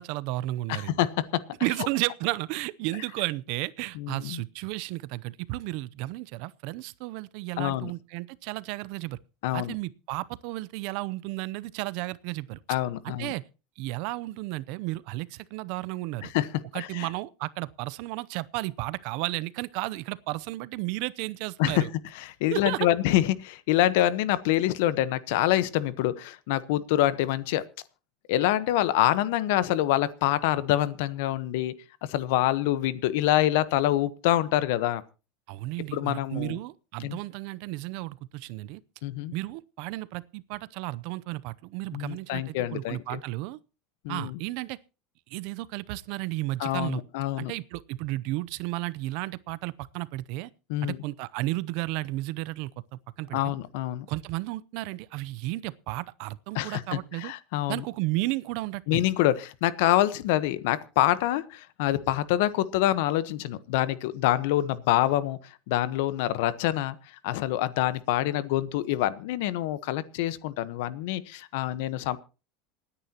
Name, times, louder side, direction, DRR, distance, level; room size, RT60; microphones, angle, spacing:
voice 1, 0.0-1.0 1.6-9.2 9.5-12.6 13.0-13.4 13.8-16.3 16.7-21.9 22.5-22.9 35.5-38.8 39.3-43.6 44.1-44.8 45.3-47.0 47.4-50.5 50.8-53.4 54.1-57.3 57.7-59.1, right 19 dB, 60° right, 0.6 m, -33 dB
voice 2, 0.7-1.4 3.9-4.4 7.6-7.9 9.4-9.7 12.7-13.3 16.2-16.5 16.7-17.1 21.6-21.9 22.1-27.6 28.3-31.7 32.1-35.0 35.9-36.6 37.0-37.2 39.0-39.3 41.9-43.2 44.0-44.4 46.6-47.5 50.7-51.0 53.3-54.1 56.5-57.8 58.9-72.2, left 14 dB, 70° left, 1.1 m, -26 dB
27.0 x 9.9 x 2.9 m
supercardioid pair, 140°, 0 cm